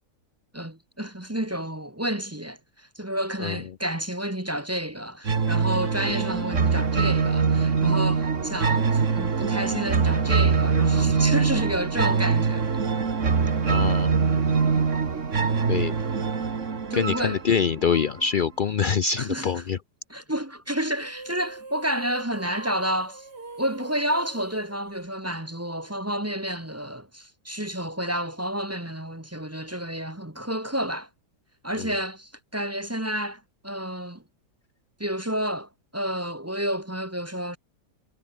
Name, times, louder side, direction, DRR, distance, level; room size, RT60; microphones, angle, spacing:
voice 1, 0.5-12.7 16.9-17.4 19.2-19.5 20.1-23.3 23.6-31.1 31.6-34.2 35.0-37.6, equal, 10° right, 1.4 m, -30 dB
sound 1, 5.3-18.2, right 5 dB, 50° right, 2.1 m, -23 dB
voice 2, 13.7-14.2 15.7-15.9 16.9-19.8 31.8-31.9, left 6 dB, 75° left, 0.4 m, -25 dB
sound 2, 20.9-25.7, right 3 dB, 80° right, 4.7 m, -43 dB
omnidirectional pair, 1.8 m